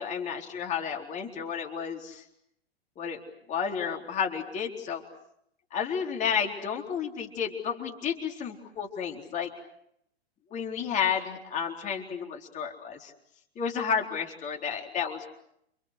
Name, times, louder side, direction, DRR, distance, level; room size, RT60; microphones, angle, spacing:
voice 1, 0.0-2.2 3.0-3.2 3.5-5.0 5.7-9.5 10.5-13.1 13.6-15.3, left 7 dB, 25° left, 1 dB, 4.0 m, -31 dB
29.5 x 29.0 x 6.6 m, 0.74 s
figure-of-eight pair, 105°, 31 cm